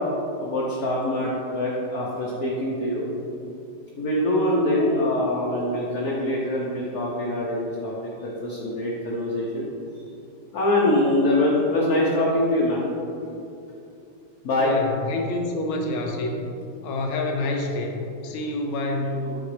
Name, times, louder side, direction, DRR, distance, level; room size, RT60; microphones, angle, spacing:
voice 1, 0.4-3.0 4.0-9.7 10.5-12.8 14.4-14.8 19.0-19.4, left 1 dB, 60° left, -5 dB, 1.1 m, -24 dB
voice 2, 14.6-16.5 16.8-19.3, left 2 dB, 80° left, 2 dB, 1.6 m, -28 dB
8.5 x 4.4 x 3.3 m, 2.6 s
omnidirectional pair, 2.2 m